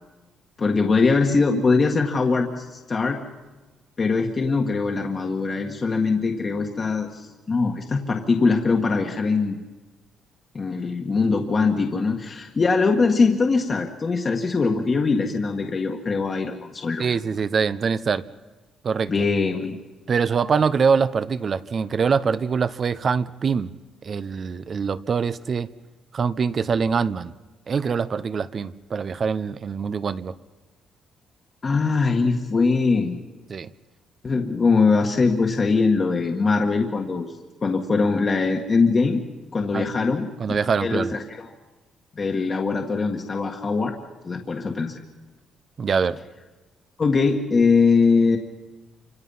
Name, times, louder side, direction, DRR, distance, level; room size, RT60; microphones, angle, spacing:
voice 1, 0.6-3.2 4.0-9.6 10.5-17.1 19.1-19.8 31.6-33.2 34.2-37.3 37.6-39.2 39.5-41.5 42.1-43.9 44.2-44.9 47.0-48.4, left 4 dB, 40° left, 1 dB, 1.7 m, -22 dB
voice 2, 17.0-18.2 18.8-19.1 20.1-23.7 24.0-25.7 26.1-27.3 27.7-30.3 33.5-33.7 39.7-39.9 40.4-41.1 45.8-46.2, right 6 dB, 45° right, 14 dB, 0.8 m, -24 dB
28.5 x 26.0 x 5.7 m, 1.2 s
cardioid pair, 90°, 0 cm